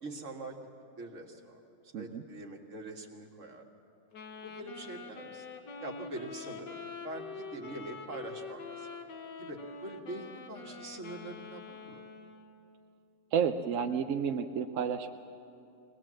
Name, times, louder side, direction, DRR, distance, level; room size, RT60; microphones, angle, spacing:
voice 1, 0.0-0.6 1.0-3.6 4.4-5.5 5.8-6.8 7.0-8.9 9.4-12.0, right 2 dB, 45° right, 1 dB, 2.0 m, -44 dB
voice 2, 1.9-2.2 13.3-15.2, right 7 dB, 65° right, 6 dB, 0.8 m, -31 dB
Wind instrument woodwind instrument, 4.1-12.6, left 5 dB, 70° left, 1.8 m, -45 dB
22.0 x 19.5 x 7.5 m, 2.7 s
omnidirectional pair, 1.9 m